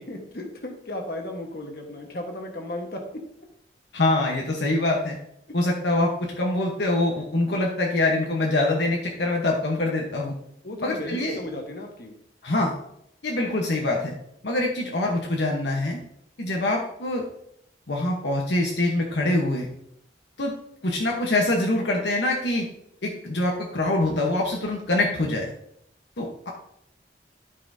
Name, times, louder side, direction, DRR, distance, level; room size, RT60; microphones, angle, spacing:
voice 1, 0.0-3.0 10.6-12.1, left 1 dB, 55° left, 2 dB, 1.4 m, -35 dB
voice 2, 3.9-5.2 5.5-10.3 10.8-11.4 12.4-12.7 13.2-14.1 14.4-16.0 16.4-17.2 17.9-19.7 20.4-20.5 20.8-22.7 23.0-25.5 26.2-26.5, left 2 dB, 70° left, -1 dB, 1.1 m, -24 dB
12.5 x 5.7 x 2.7 m, 0.73 s
head